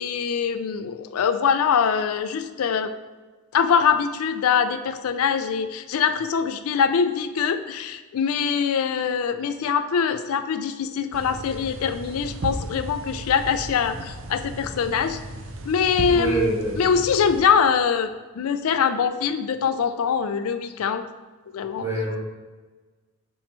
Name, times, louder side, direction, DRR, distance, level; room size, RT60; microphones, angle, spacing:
voice 1, 0.0-2.9 3.5-15.2 15.7-16.5 16.8-21.1 21.5-21.9, left 6 dB, 75° left, 10 dB, 0.4 m, -23 dB
sound 1, 11.1-17.4, right 1 dB, 60° right, 0.6 m, -35 dB
voice 2, 16.1-16.8 21.7-22.2, right 2 dB, 15° right, -5 dB, 1.5 m, -25 dB
7.3 x 5.4 x 3.1 m, 1.3 s
head